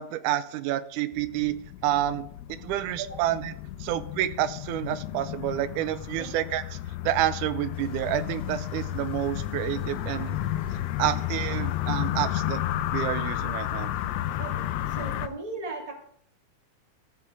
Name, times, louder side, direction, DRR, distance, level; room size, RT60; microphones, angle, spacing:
voice 1, 0.0-1.5 1.8-3.5 3.8-6.8 7.0-10.4 11.0-12.6 12.9-13.9, right 13 dB, 90° right, 13 dB, 2.1 m, -29 dB
sound 1, 1.1-15.3, left 13 dB, 80° left, 1.5 m, -32 dB
sound 2, 7.7-15.3, left 3 dB, 35° left, 1.6 m, -49 dB
voice 2, 14.4-15.9, right 4 dB, 15° right, 0 dB, 1.6 m, -37 dB
14.5 x 5.6 x 4.7 m, 0.64 s
omnidirectional pair, 3.5 m